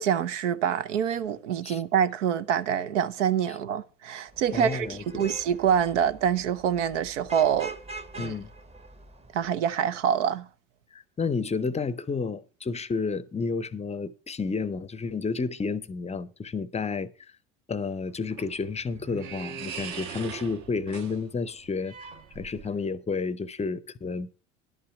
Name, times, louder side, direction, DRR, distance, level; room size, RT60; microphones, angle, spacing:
voice 1, 0.0-7.7 8.1-8.3 9.3-10.4, right 8 dB, 75° right, 0.8 m, -26 dB
Vehicle horn car horn honking / Traffic noise roadway noise, 4.3-9.6, right 3 dB, 15° right, 1.0 m, -44 dB
voice 2, 4.5-5.3 8.2-8.5 10.9-17.1 17.7-21.9 22.3-24.3, left 4 dB, 20° left, 0.6 m, -31 dB
sound 1, 17.9-22.9, right 6 dB, 55° right, 1.6 m, -41 dB
11.0 x 5.6 x 7.6 m
hypercardioid pair, 75°, 37 cm